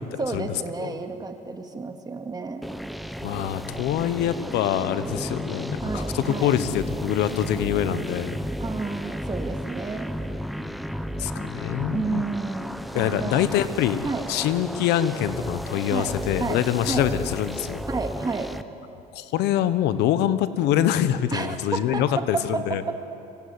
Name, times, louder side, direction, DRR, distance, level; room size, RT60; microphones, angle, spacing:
voice 1, 0.2-2.7 5.8-6.6 8.6-10.1 11.8-13.5 14.0-14.3 15.9-17.1 17.9-18.5 21.3-22.9, right 4 dB, 25° right, 5 dB, 2.1 m, -31 dB
sound 1, 2.6-18.6, equal, ahead, 0.9 m, -33 dB
voice 2, 3.2-8.4 11.2-12.2 12.9-14.0 14.3-17.8 19.1-22.8, left 11 dB, 90° left, 13 dB, 1.1 m, -25 dB
24.5 x 18.0 x 9.7 m, 2.7 s
cardioid pair, 110°, 17 cm